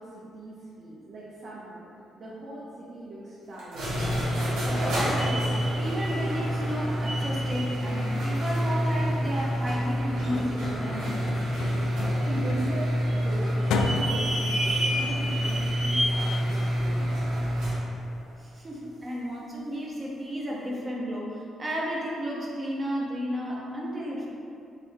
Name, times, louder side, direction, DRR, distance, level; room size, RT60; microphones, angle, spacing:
voice 1, 0.0-1.9 2.2-4.0 12.2-17.8, right 1 dB, 55° right, -7 dB, 0.8 m, -39 dB
sound 1, 3.6-17.8, equal, 90° right, 1.4 m, -27 dB
voice 2, 4.7-11.2 18.4-24.3, equal, 30° right, -4 dB, 1.0 m, -33 dB
sound 2, 9.9-14.4, left 4 dB, 85° left, 0.3 m, -35 dB
4.0 x 3.1 x 4.1 m, 2.6 s
cardioid pair, 90°, 0 cm